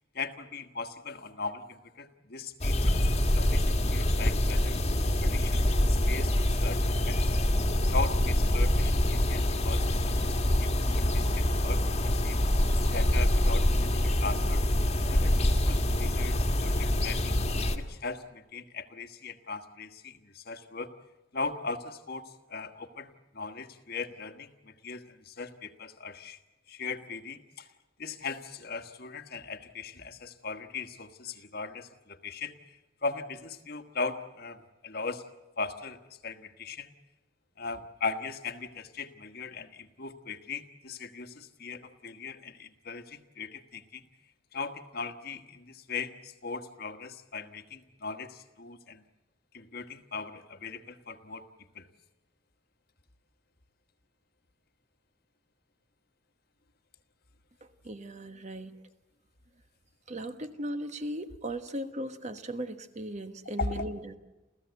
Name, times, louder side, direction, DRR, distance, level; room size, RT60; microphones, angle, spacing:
voice 1, 0.1-2.9 3.2-4.8 5.2-7.4 7.9-10.7 10.9-12.4 12.9-14.6 15.0-17.4 17.7-20.9 21.3-26.4 26.7-27.7 28.0-35.2 35.6-36.0 36.2-36.9 37.6-44.0 44.5-49.0 49.5-51.5 51.7-51.9 63.6-63.9, left 4 dB, 50° left, 8 dB, 1.4 m, -39 dB
sound 1, 2.6-17.8, left 1 dB, 35° left, 1.6 m, -25 dB
voice 2, 57.8-58.7 60.1-64.1, right 1 dB, 35° right, 8 dB, 1.3 m, -37 dB
29.0 x 15.0 x 8.2 m, 1.0 s
head